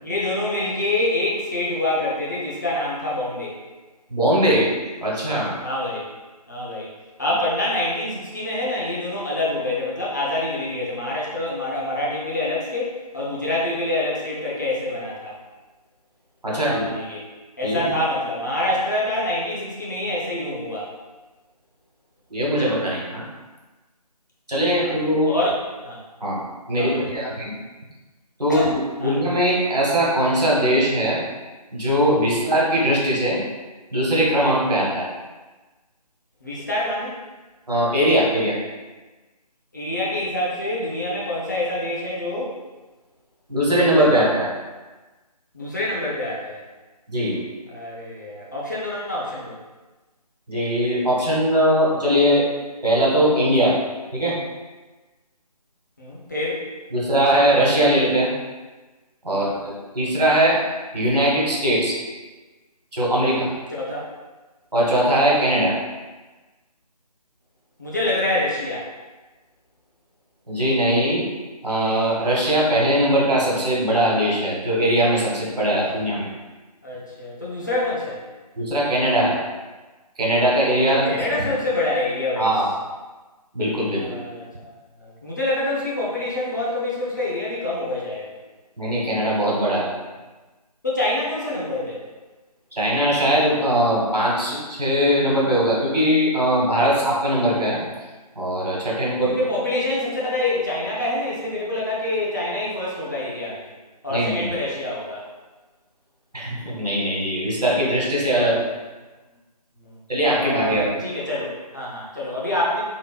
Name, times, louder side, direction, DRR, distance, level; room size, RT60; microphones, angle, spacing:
voice 1, 0.0-3.6 5.6-6.1 6.5-6.9 7.2-15.4 16.5-17.2 17.6-20.9 24.8-25.5 25.8-26.0 26.8-27.2 28.5-28.7 29.0-29.2 32.3-32.5 36.4-37.2 39.7-42.6 45.5-46.6 47.7-49.6 56.0-56.6 59.3-59.6 63.2-63.5 63.7-64.1 67.8-68.9 75.7-76.1 76.8-78.2 81.0-82.5 83.9-88.4 90.8-92.0 96.9-97.0 98.9-103.7 104.0-105.3 108.4-108.5 109.8-110.0 110.4-112.8, left 1 dB, 30° left, -6 dB, 0.5 m, -26 dB
voice 2, 4.1-4.7 5.0-5.5 16.4-16.9 17.6-17.9 22.3-23.3 24.5-25.3 26.2-26.4 26.7-27.5 28.4-31.2 31.7-33.4 33.9-35.1 37.7-38.5 43.5-44.5 47.1-47.4 50.5-52.4 52.8-53.7 54.1-54.4 56.9-58.3 59.2-60.6 60.9-61.9 62.9-63.5 64.7-65.7 70.5-71.3 71.6-76.3 78.6-79.4 80.2-81.5 82.4-82.7 83.5-84.2 88.8-89.9 92.7-97.8 98.4-99.3 104.1-104.6 106.3-108.6 110.1-110.9, equal, 75° right, -4 dB, 1.1 m, -20 dB
3.7 x 2.1 x 2.3 m, 1.2 s
figure-of-eight pair, 155°, 20 cm